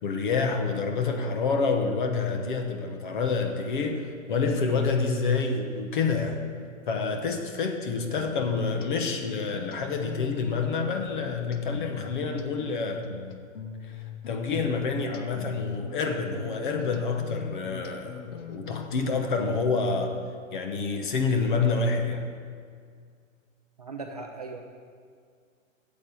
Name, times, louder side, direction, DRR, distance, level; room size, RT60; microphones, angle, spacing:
voice 1, 0.0-6.5 6.9-13.1 13.8-20.2 20.5-22.2, left 4 dB, 40° left, 5 dB, 1.0 m, -28 dB
sound 1, 8.2-19.9, left 7 dB, 65° left, 1.0 m, -42 dB
voice 2, 23.8-24.6, right 3 dB, 30° right, 2 dB, 0.4 m, -38 dB
8.8 x 7.6 x 8.4 m, 2.1 s
hypercardioid pair, 175°, 40 cm